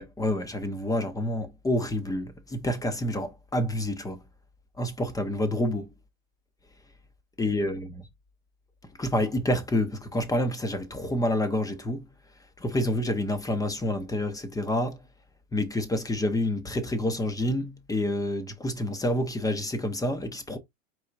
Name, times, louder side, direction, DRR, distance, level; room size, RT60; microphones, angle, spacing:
voice 1, 0.0-4.2 4.8-5.9 7.4-7.9 9.0-12.1 12.6-15.0 15.5-20.6, left 1 dB, 10° left, 0.6 m, -28 dB
4.6 x 2.3 x 3.7 m
supercardioid pair, 125°, 40 cm